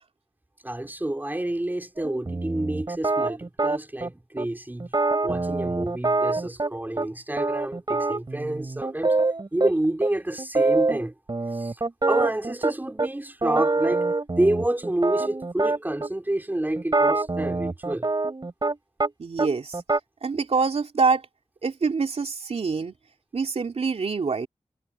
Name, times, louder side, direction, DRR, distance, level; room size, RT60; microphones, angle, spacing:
voice 1, 0.6-4.9 5.2-9.1 9.5-11.1 11.5-11.8 12.1-14.1 14.4-18.1, right 1 dB, 15° right, 4.0 m, -28 dB
sound 1, 2.0-4.1 4.4-4.5 4.8-7.1 7.4-9.7 10.0-10.1 10.4-11.0 11.3-13.1 13.4-16.1 16.8-19.1 19.4-20.0, right 3 dB, 40° right, 5.2 m, -25 dB
voice 2, 19.2-19.8 20.2-21.2 21.6-22.9 23.3-24.5, right 4 dB, 65° right, 3.1 m, -25 dB
wide cardioid pair, 80°, 11 cm